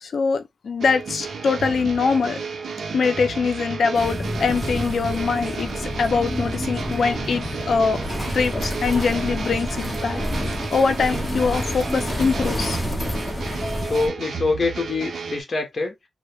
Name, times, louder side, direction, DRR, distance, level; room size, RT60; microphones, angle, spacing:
voice 1, 0.0-2.4 2.9-8.0 8.3-10.2 10.7-12.8, left 5 dB, 70° left, 0.4 m, -23 dB
sound 1, 0.8-15.4, right 5 dB, 80° right, 0.5 m, -33 dB
sound 2, 3.9-14.1, left 1 dB, 15° left, 0.8 m, -29 dB
voice 2, 13.9-15.9, left 3 dB, 45° left, 0.7 m, -24 dB
2.1 x 2.1 x 3.0 m
wide cardioid pair, 135°, 0 cm